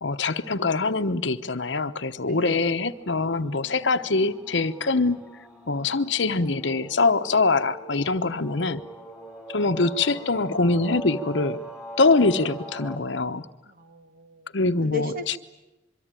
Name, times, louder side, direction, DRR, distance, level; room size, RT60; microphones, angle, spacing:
voice 1, 0.0-5.2 5.7-8.8 9.5-11.6 12.0-13.5 14.5-15.4, left 3 dB, 65° left, 12 dB, 1.0 m, -23 dB
voice 2, 2.3-2.6 13.7-14.6 14.8-15.4, left 2 dB, 50° right, 8 dB, 1.9 m, -37 dB
sound 1, 2.7-13.0, right 1 dB, 5° right, 3.6 m, -42 dB
25.0 x 24.0 x 9.1 m, 0.99 s
head